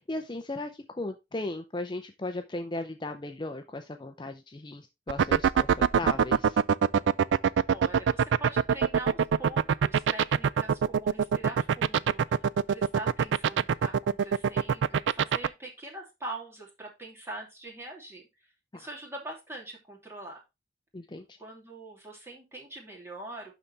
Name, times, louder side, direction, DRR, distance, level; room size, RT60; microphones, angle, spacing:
voice 1, 0.0-6.6 18.7-18.9 20.9-21.4, left 2 dB, 25° left, 7 dB, 0.6 m, -37 dB
sound 1, 5.1-15.5, right 7 dB, 85° right, 0.4 m, -22 dB
voice 2, 7.7-18.3 18.7-20.4 21.4-23.6, right 2 dB, 15° right, -1 dB, 2.7 m, -43 dB
11.5 x 4.0 x 3.3 m, 0.24 s
head